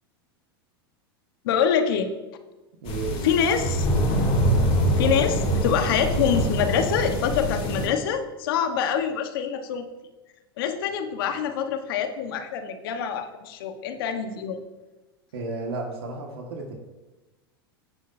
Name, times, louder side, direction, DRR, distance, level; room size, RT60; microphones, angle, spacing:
voice 1, 1.4-2.1 3.2-3.9 5.0-9.8 10.6-14.6, left 7 dB, 65° left, 7 dB, 1.2 m, -25 dB
voice 2, 2.8-3.5 15.3-16.7, right 3 dB, 75° right, 1 dB, 1.8 m, -33 dB
sound 1, 2.9-7.9, equal, 50° left, 3.7 m, -24 dB
16.0 x 7.3 x 2.7 m, 1.1 s
hypercardioid pair, 100°, 13 cm